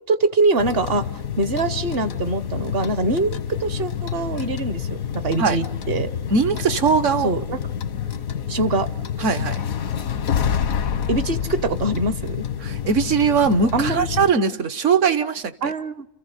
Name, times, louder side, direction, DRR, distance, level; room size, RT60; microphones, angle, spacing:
voice 1, 0.1-1.1 1.4-6.1 7.2-7.6 8.5-8.9 11.1-12.4 13.7-14.1 15.6-16.1, right 2 dB, 50° right, 13 dB, 1.1 m, -23 dB
sound 1, 0.6-14.3, left 8 dB, 85° left, 1.5 m, -28 dB
voice 2, 6.3-7.3 9.2-9.6 12.6-15.7, right 5 dB, 65° right, 10 dB, 1.5 m, -20 dB
29.5 x 15.0 x 8.0 m, 0.88 s
omnidirectional pair, 1.4 m